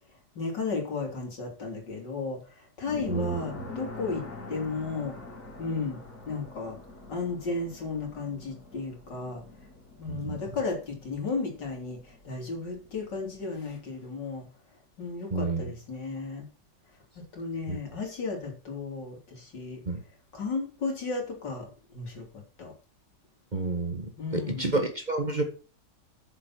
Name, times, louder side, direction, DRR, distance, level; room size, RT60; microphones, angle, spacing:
voice 1, 0.4-5.2 5.6-6.0 6.3-6.8 7.1-9.4 10.0-14.4 15.0-16.5 17.2-19.8 20.3-22.7 24.2-24.7, left 4 dB, 80° left, 1 dB, 3.7 m, -34 dB
sound 1, 2.9-13.4, left 3 dB, 55° left, 3.6 m, -45 dB
voice 2, 3.1-3.4 10.1-10.4 15.3-15.6 17.7-17.8 19.9-20.0 23.5-25.4, right 3 dB, 25° right, 5 dB, 1.5 m, -29 dB
8.7 x 6.9 x 5.8 m, 0.37 s
omnidirectional pair, 1.9 m